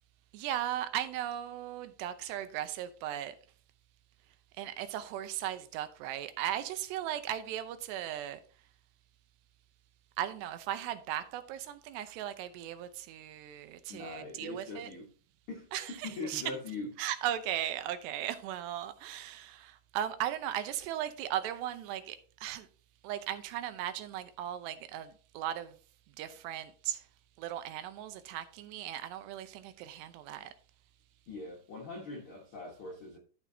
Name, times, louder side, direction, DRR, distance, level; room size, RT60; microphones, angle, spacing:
voice 1, 0.3-3.4 4.6-8.4 10.2-14.9 15.7-16.4 17.0-22.7 23.0-25.8 26.2-27.1 27.4-30.5, right 11 dB, 90° right, 2.9 m, -37 dB
voice 2, 13.9-15.1 15.5-16.9 31.3-33.2, left 3 dB, 85° left, 1.1 m, -42 dB
13.0 x 6.0 x 2.7 m
omnidirectional pair, 4.7 m